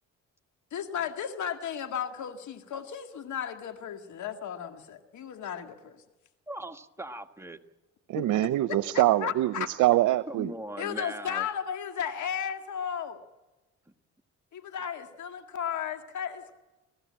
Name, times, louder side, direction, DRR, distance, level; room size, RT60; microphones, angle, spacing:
voice 1, 0.7-6.0 8.2-8.3 8.7-9.7 10.8-13.2 14.5-16.6, left 8 dB, 70° left, 7 dB, 2.0 m, -34 dB
voice 2, 6.5-7.6 10.3-11.5, right 1 dB, 10° right, 6 dB, 1.5 m, -39 dB
voice 3, 8.1-10.5, right 15 dB, 85° right, 15 dB, 0.7 m, -24 dB
28.5 x 15.0 x 8.7 m, 1.1 s
cardioid pair, 90°, 30 cm